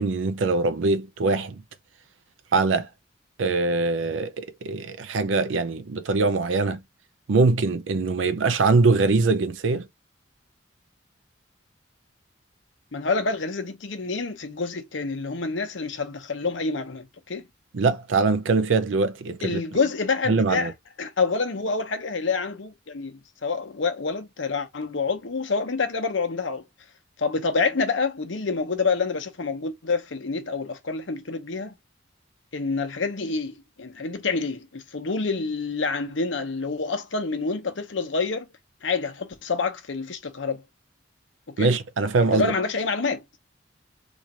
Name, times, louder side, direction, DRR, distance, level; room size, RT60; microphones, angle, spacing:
voice 1, 0.0-1.6 2.5-2.9 3.4-6.8 7.3-9.9 17.7-19.6 20.3-20.7 41.6-42.5, right 3 dB, 85° right, 0.5 m, -22 dB
voice 2, 12.9-17.4 19.4-20.7 21.0-26.6 27.2-31.7 32.5-38.5 38.8-40.6 41.6-41.7 42.2-43.4, left 4 dB, 80° left, 0.8 m, -27 dB
3.2 x 2.4 x 4.2 m
head